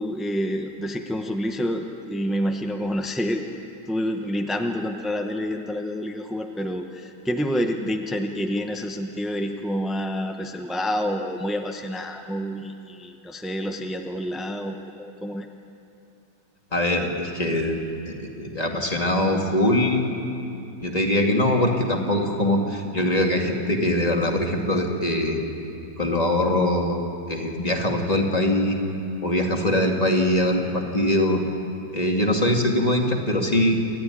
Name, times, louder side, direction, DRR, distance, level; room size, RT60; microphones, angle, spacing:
voice 1, 0.0-3.4 3.9-15.5, equal, ahead, 4 dB, 0.4 m, -28 dB
voice 2, 16.7-17.8 18.1-20.1 20.8-25.4 26.0-27.0 27.3-28.8 29.2-31.4 31.9-33.8, left 1 dB, 20° left, 1 dB, 2.1 m, -22 dB
28.0 x 12.0 x 9.8 m, 2.6 s
omnidirectional pair, 1.9 m